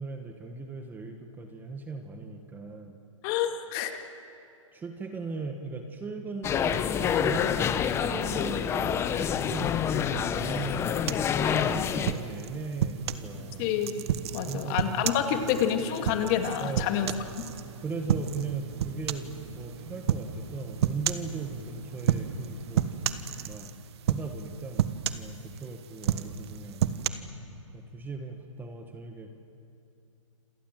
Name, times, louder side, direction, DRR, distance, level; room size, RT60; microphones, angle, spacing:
voice 1, 0.0-3.0 4.7-7.5 7.9-11.0 11.3-13.7 14.5-15.1 16.6-17.0 17.8-22.9 23.5-23.7 24.1-26.8 27.7-29.3, right 4 dB, 10° right, 5 dB, 1.5 m, -38 dB
voice 2, 3.2-4.0 13.6-13.9 14.3-17.1, left 9 dB, 35° left, 6 dB, 2.3 m, -28 dB
sound 1, 6.4-12.1, left 8 dB, 15° left, 0.9 m, -27 dB
sound 2, 11.1-13.3 13.8-17.6 18.1-18.5 18.8-19.4 20.1-20.3 20.8-21.3 22.0-22.5 22.7-23.7 24.1-24.5 24.8-25.6 26.0-27.1, right 10 dB, 50° right, 1.4 m, -30 dB
sound 3, 12.9-23.4, right 5 dB, 90° right, 7.6 m, -45 dB
28.5 x 26.5 x 7.7 m, 2.7 s
hypercardioid pair, 145°, 17 cm